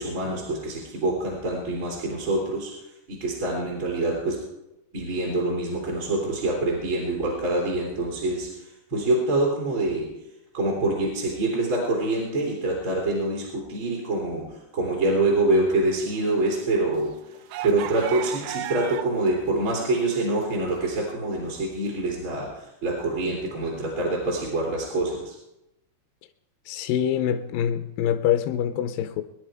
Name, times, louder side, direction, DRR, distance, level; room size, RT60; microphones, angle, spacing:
voice 1, 0.0-4.4 4.9-10.1 10.5-17.1 17.6-25.3, right 2 dB, 35° right, 3.5 m, -26 dB
sound 1, 16.1-19.3 19.6-20.9, right 14 dB, 80° right, 1.9 m, -36 dB
voice 2, 26.7-29.2, left 9 dB, 80° left, 2.4 m, -25 dB
23.0 x 11.0 x 4.9 m
omnidirectional pair, 4.3 m